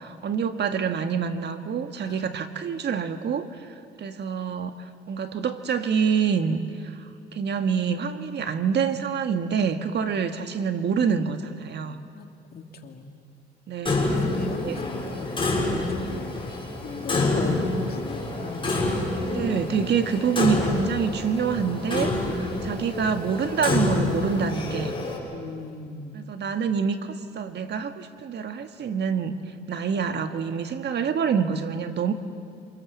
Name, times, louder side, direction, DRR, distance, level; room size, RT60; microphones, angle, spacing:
voice 1, 0.0-4.7 5.1-6.9 7.3-12.0 13.7-14.2 14.6-14.8 19.3-25.0 26.1-29.4 29.7-32.1, right 6 dB, 60° right, 8 dB, 1.7 m, -26 dB
voice 2, 2.0-2.7 10.9-11.0 12.1-13.1 14.0-16.5 16.8-18.9 25.3-26.2, left 4 dB, 50° left, 4 dB, 2.8 m, -38 dB
Clock, 13.9-25.2, left 2 dB, 25° left, 6.9 m, -27 dB
28.0 x 27.0 x 7.4 m, 2.3 s
cardioid pair, 90°, 20 cm